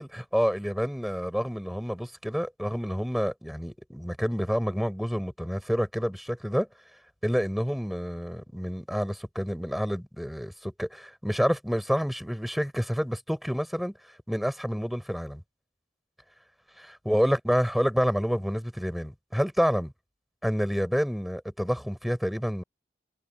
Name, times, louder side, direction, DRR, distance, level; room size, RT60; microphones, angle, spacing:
voice 1, 0.0-6.7 7.2-13.9 14.3-15.4 16.8-19.9 20.4-22.6, equal, ahead, 5.4 m, -28 dB
head